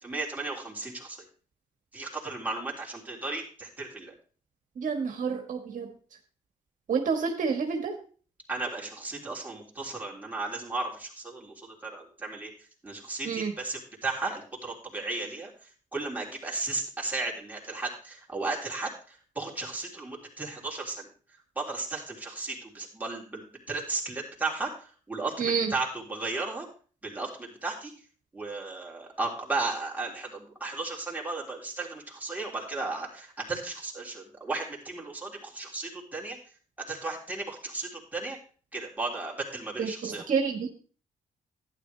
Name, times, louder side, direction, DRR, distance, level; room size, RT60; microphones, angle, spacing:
voice 1, 0.0-1.3 1.9-4.1 8.5-12.5 12.8-21.1 21.6-25.3 25.7-26.7 27.0-27.9 28.3-36.4 36.8-38.4 38.7-40.2, right 3 dB, 10° right, -3 dB, 3.4 m, -35 dB
voice 2, 4.7-5.9 6.9-7.9 13.2-13.5 25.4-25.7 39.8-40.7, right 5 dB, 60° right, 3 dB, 1.5 m, -29 dB
11.5 x 9.9 x 3.3 m, 0.40 s
cardioid pair, 85°, 15 cm